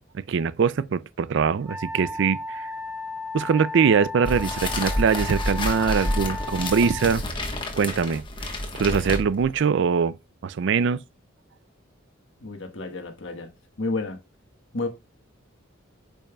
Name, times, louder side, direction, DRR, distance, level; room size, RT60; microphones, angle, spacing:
voice 1, 0.1-2.7 3.3-7.2 7.8-8.2 8.7-10.1 10.4-11.0, right 6 dB, 60° right, 0.4 m, -22 dB
Wind instrument woodwind instrument, 1.6-7.2, left 3 dB, 10° right, 1.3 m, -35 dB
sound 1, 4.2-9.6, left 1 dB, 25° left, 1.2 m, -29 dB
voice 2, 12.4-13.5 13.8-14.2 14.7-14.9, left 2 dB, 60° left, 1.3 m, -30 dB
8.7 x 5.3 x 2.3 m
head